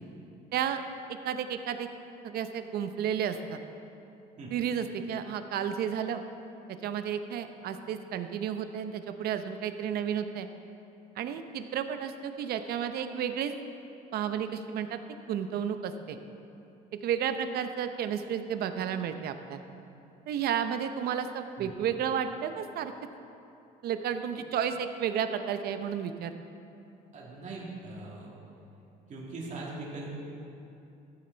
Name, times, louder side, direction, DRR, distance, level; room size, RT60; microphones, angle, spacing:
voice 1, 1.2-1.9 2.2-3.6 4.5-6.2 6.8-10.5 11.2-13.5 14.1-15.0 15.3-16.2 16.9-19.6 20.3-22.9 23.8-26.3, right 8 dB, 65° right, 9 dB, 0.7 m, -32 dB
voice 2, 27.1-28.4 29.1-30.1, right 2 dB, 45° right, -4 dB, 2.3 m, -41 dB
13.5 x 8.8 x 4.0 m, 2.8 s
cardioid pair, 110°, 17 cm